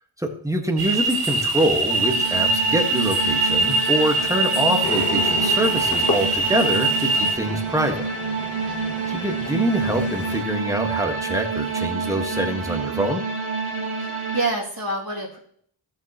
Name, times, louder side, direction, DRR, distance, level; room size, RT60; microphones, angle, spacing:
voice 1, 0.2-8.1 9.1-13.2, equal, 5° right, 3 dB, 1.5 m, -25 dB
sound 1, 0.8-7.3, right 2 dB, 85° right, 1.2 m, -22 dB
sound 2, 1.9-14.4, right 5 dB, 70° right, 1.9 m, -28 dB
sound 3, 4.8-10.4, left 3 dB, 35° left, 2.3 m, -33 dB
voice 2, 7.2-7.6 8.6-9.0 14.0-15.4, right 2 dB, 45° right, -5 dB, 2.7 m, -29 dB
14.0 x 6.6 x 3.0 m, 0.63 s
wide cardioid pair, 60°, 49 cm